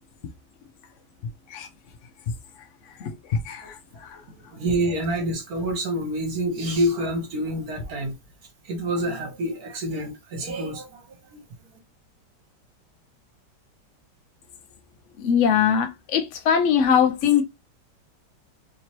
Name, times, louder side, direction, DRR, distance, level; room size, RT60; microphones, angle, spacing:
voice 1, 2.6-4.2 15.2-17.4, left 8 dB, 80° left, 0.6 m, -22 dB
voice 2, 4.3-8.1 8.6-11.0 11.3-11.4, right 1 dB, 60° right, 1.5 m, -27 dB
3.3 x 3.0 x 2.9 m
omnidirectional pair, 1.9 m